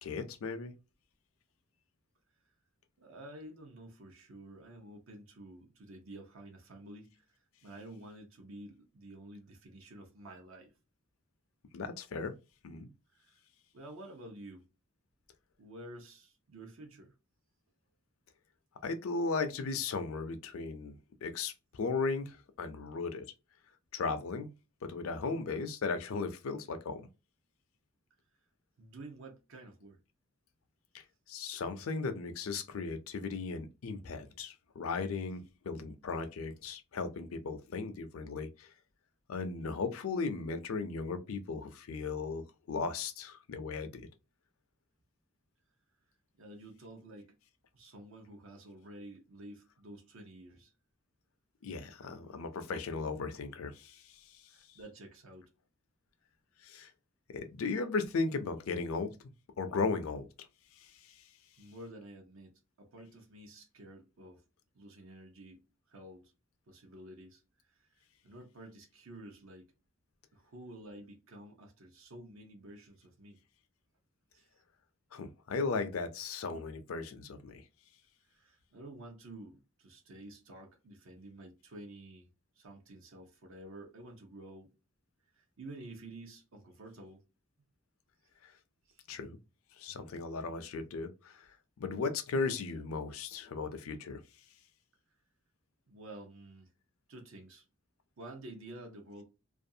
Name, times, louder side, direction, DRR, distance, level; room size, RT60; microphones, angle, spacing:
voice 1, 0.0-0.7 11.7-12.3 12.6-12.9 18.8-23.2 23.9-24.5 24.8-27.1 30.9-38.7 39.3-44.1 51.6-54.4 56.6-56.9 57.3-59.2 59.6-60.5 60.8-61.2 75.1-77.6 88.4-88.5 89.1-89.4 89.8-91.5 91.8-94.2, left 4 dB, 80° left, 0.4 m, -36 dB
voice 2, 3.0-7.3 7.6-10.7 13.1-13.4 13.7-14.6 15.6-17.1 28.8-30.0 46.4-47.4 47.7-50.7 54.5-55.5 61.6-64.4 64.7-65.6 65.9-66.3 66.7-67.4 67.7-69.7 70.3-73.4 74.3-74.5 78.2-82.3 82.6-84.7 85.3-87.2 88.9-89.2 95.9-96.7 97.1-97.6 98.2-99.2, right 1 dB, 70° right, 0.6 m, -50 dB
2.4 x 2.3 x 2.7 m
head